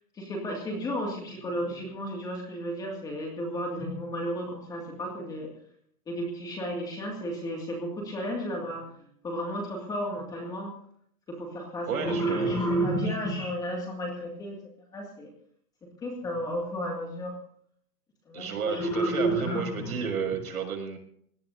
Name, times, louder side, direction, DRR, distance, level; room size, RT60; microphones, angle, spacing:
voice 1, 0.1-5.5 6.1-10.7 11.3-14.6 14.9-15.3 16.0-17.4 18.3-19.9, equal, 10° left, 0 dB, 2.1 m, -32 dB
voice 2, 11.9-12.6 13.1-13.2 18.3-21.0, right 6 dB, 70° right, 3 dB, 6.4 m, -32 dB
23.0 x 18.0 x 2.7 m, 0.64 s
hypercardioid pair, 175°, 45 cm